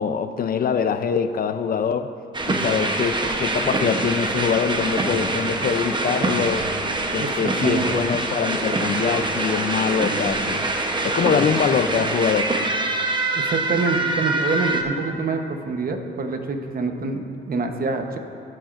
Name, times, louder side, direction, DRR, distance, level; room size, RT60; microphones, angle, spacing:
voice 1, 0.0-2.1 2.5-6.7 7.1-10.7 11.0-12.5, left 7 dB, 45° left, 10 dB, 0.6 m, -23 dB
sound 1, 2.3-14.8, right 2 dB, 25° right, 0.9 m, -24 dB
voice 2, 7.2-8.0 13.3-18.2, right 4 dB, 45° right, 5 dB, 1.0 m, -26 dB
17.0 x 7.7 x 2.6 m, 2.7 s
cardioid pair, 90°, 20 cm